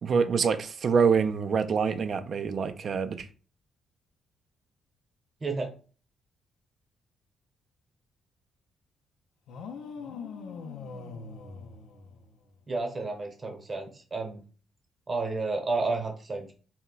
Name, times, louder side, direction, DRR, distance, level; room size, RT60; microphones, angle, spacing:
voice 1, 0.0-3.3, right 6 dB, 50° right, 0.3 m, -25 dB
sound 1, 9.5-12.6, left 5 dB, 85° left, 0.4 m, -42 dB
voice 2, 12.7-14.4 15.1-16.5, right 3 dB, 35° right, 0.8 m, -31 dB
2.3 x 2.1 x 3.8 m
cardioid pair, 90°, 0 cm